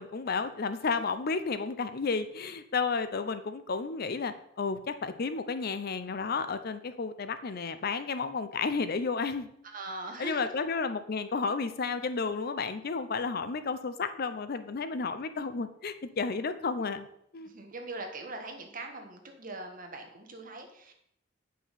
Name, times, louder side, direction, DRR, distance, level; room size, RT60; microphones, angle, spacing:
voice 1, 0.0-9.5 10.2-17.1 17.3-17.5, left 4 dB, 55° left, 11 dB, 0.6 m, -32 dB
voice 2, 9.6-10.5 17.4-20.9, right 2 dB, 45° right, 3 dB, 1.5 m, -41 dB
8.6 x 5.6 x 5.6 m, 0.73 s
head